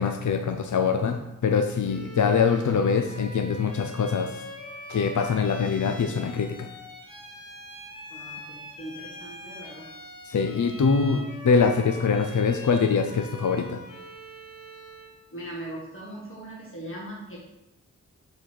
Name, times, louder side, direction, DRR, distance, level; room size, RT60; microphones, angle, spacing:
voice 1, 0.0-4.3 4.9-6.7 10.3-13.8, left 5 dB, 65° left, 5 dB, 0.6 m, -24 dB
Bowed string instrument, 1.8-15.2, equal, 85° left, 1.9 m, -43 dB
voice 2, 8.1-9.9 15.3-17.4, right 1 dB, 40° left, -5 dB, 1.9 m, -40 dB
7.3 x 4.2 x 6.5 m, 0.92 s
cardioid pair, 60°, 32 cm